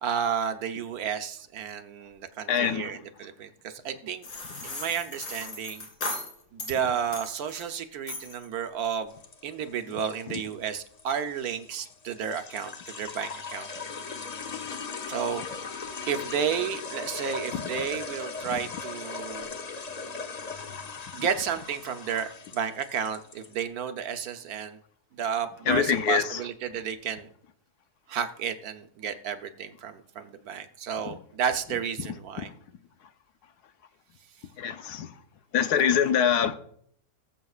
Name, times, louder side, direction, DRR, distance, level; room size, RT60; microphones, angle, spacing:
voice 1, 0.0-4.3 4.6-5.9 6.5-9.1 9.4-13.7 15.1-15.4 16.1-19.5 21.1-24.8 25.2-27.3 28.1-32.5, right 7 dB, 70° right, 1.3 m, -32 dB
voice 2, 2.5-2.9 17.5-17.6 18.5-18.6 25.7-26.4 31.1-31.2 32.4-32.5 34.6-35.1 35.5-36.5, left 8 dB, 85° left, 1.3 m, -24 dB
sound 1, 4.2-6.8 7.1-7.7 8.1-8.5, left 2 dB, 70° left, 2.7 m, -37 dB
sound 2, 9.1-23.6, left 4 dB, 50° left, 0.5 m, -39 dB
19.5 x 7.4 x 2.4 m
omnidirectional pair, 1.7 m